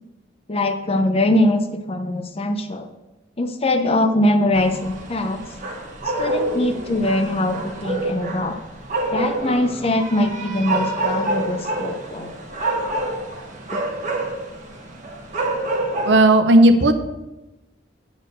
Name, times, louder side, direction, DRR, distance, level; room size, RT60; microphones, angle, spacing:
voice 1, 0.5-1.6 1.9-2.9 3.4-5.4 6.0-8.6 9.1-12.3, left 1 dB, 30° left, 7 dB, 0.6 m, -22 dB
sound 1, 4.5-16.2, right 2 dB, 40° right, 1.1 m, -27 dB
voice 2, 16.1-16.9, right 1 dB, 65° right, 8 dB, 0.7 m, -13 dB
8.0 x 4.4 x 6.7 m, 1.0 s
head